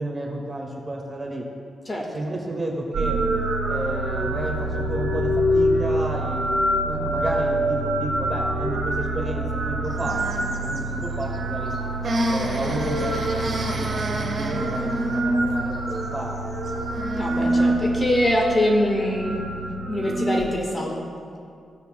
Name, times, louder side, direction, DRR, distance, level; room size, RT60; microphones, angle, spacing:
voice 1, 0.0-1.5 2.1-3.2 3.7-6.4 6.8-11.7 12.3-16.3, right 1 dB, 25° right, 0 dB, 1.7 m, -31 dB
voice 2, 1.8-2.2 17.1-21.1, left 1 dB, 30° left, 0 dB, 1.5 m, -24 dB
sound 1, 2.9-20.4, right 1 dB, 70° right, 2.3 m, -25 dB
sound 2, 9.8-17.8, right 1 dB, 50° right, 1.3 m, -32 dB
15.5 x 8.3 x 2.2 m, 2.3 s
cardioid pair, 85°, 0 cm